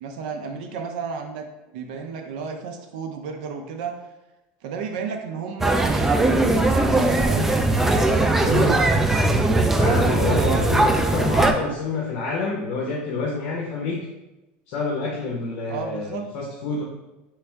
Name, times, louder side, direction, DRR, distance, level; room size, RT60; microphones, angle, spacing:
voice 1, 0.0-1.5 1.7-4.0 4.6-7.5 10.3-11.0 15.7-16.3, right 5 dB, 75° right, 5 dB, 0.5 m, -32 dB
sound 1, 5.6-11.5, right 2 dB, 5° right, 0.3 m, -19 dB
voice 2, 8.4-8.8 9.7-14.0 14.7-16.8, left 3 dB, 55° left, -2 dB, 0.8 m, -28 dB
3.4 x 3.2 x 4.5 m, 1.0 s
supercardioid pair, 150°, 5 cm